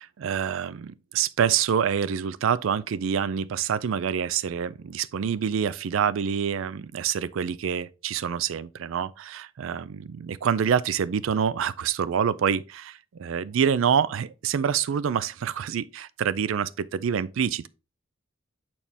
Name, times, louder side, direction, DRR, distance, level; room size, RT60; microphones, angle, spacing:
voice 1, 0.0-17.7, right 7 dB, 75° right, 0.4 m, -26 dB
7.2 x 4.3 x 3.4 m
head